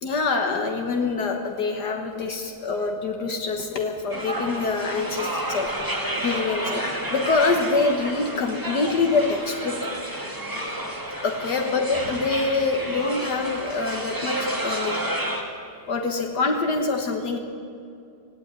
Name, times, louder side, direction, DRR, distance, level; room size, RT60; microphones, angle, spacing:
voice 1, 0.0-9.9 11.2-15.0 15.9-17.4, left 4 dB, 70° left, 3 dB, 1.9 m, -25 dB
sound 1, 4.1-15.4, right 1 dB, 10° right, 2.1 m, -30 dB
17.5 x 17.0 x 9.5 m, 2.5 s
omnidirectional pair, 1.9 m